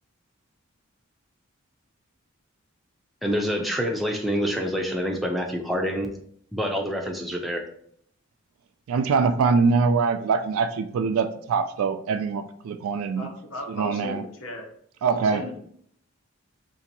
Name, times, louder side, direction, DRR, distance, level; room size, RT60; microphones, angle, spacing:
voice 1, 3.2-6.1 6.5-7.6, equal, ahead, 1 dB, 0.4 m, -26 dB
voice 2, 8.9-13.3 13.7-14.2 15.0-15.4, right 5 dB, 85° right, 9 dB, 0.3 m, -23 dB
voice 3, 13.1-14.7 15.2-15.6, equal, 70° left, 3 dB, 0.7 m, -36 dB
2.7 x 2.5 x 3.9 m, 0.65 s
head